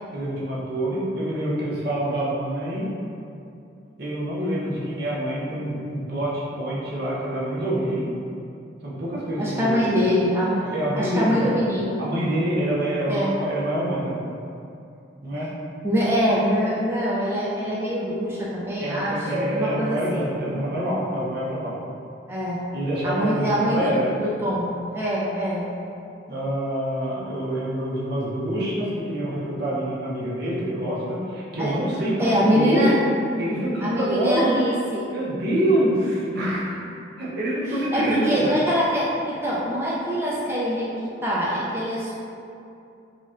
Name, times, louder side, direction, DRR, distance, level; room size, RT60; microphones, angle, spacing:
voice 1, 0.1-2.9 4.0-8.1 8.8-9.8 10.7-11.6 12.0-14.2 15.2-15.5 18.8-21.8 22.7-24.1 26.3-32.9 33.4-34.6 35.1-36.8 37.2-38.6, right 1 dB, 60° right, -6 dB, 0.7 m, -26 dB
voice 2, 9.4-12.0 13.1-13.4 15.8-20.3 22.3-22.6 23.0-25.7 31.6-31.8 32.2-32.9 33.8-35.1 37.9-42.1, equal, 15° right, -7 dB, 0.3 m, -24 dB
3.9 x 2.1 x 2.5 m, 2.6 s
head